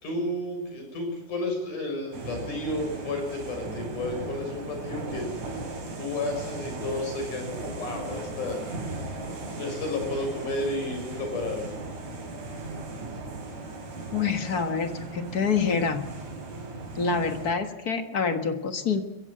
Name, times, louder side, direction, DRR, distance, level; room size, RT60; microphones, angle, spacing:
voice 1, 0.0-5.3 6.0-8.6 9.5-11.6, left 2 dB, 90° left, 3 dB, 7.9 m, -32 dB
sound 1, 2.1-17.5, right 2 dB, 85° right, 6.0 m, -37 dB
voice 2, 14.1-16.0 16.9-19.0, left 5 dB, 45° left, 8 dB, 1.3 m, -26 dB
22.5 x 15.5 x 8.8 m, 1.0 s
omnidirectional pair, 3.5 m